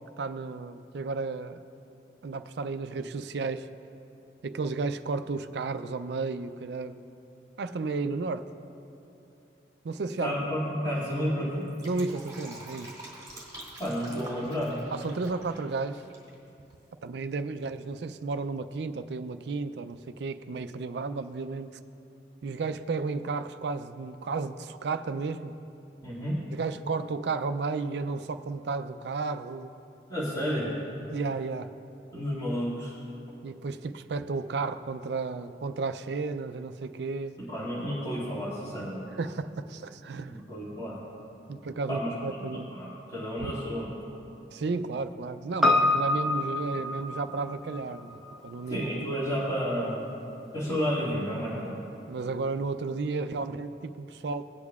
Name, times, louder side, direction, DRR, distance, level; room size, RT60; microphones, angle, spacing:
voice 1, 0.0-1.6 2.2-3.7 4.4-7.0 7.6-8.5 9.8-10.3 11.8-12.9 14.9-16.0 17.0-21.8 22.4-25.5 26.5-29.7 31.1-31.7 33.4-37.4 39.1-40.4 41.5-42.7 43.4-43.5 44.5-48.8 52.1-54.4, right 4 dB, 65° right, 10 dB, 0.4 m, -33 dB
voice 2, 10.2-11.7 13.8-14.8 26.0-26.4 30.1-30.7 32.1-32.9 37.5-39.1 40.3-41.0 41.9-42.1 42.7-43.9 48.7-50.0 50.5-51.7, equal, 20° left, -9 dB, 2.2 m, -31 dB
Fill (with liquid), 11.6-16.3 16.6-16.7, right 1 dB, 20° right, 2.4 m, -46 dB
Piano, 45.6-50.1 50.4-50.5, left 2 dB, ahead, 0.6 m, -28 dB
18.0 x 8.3 x 2.4 m, 2.8 s
head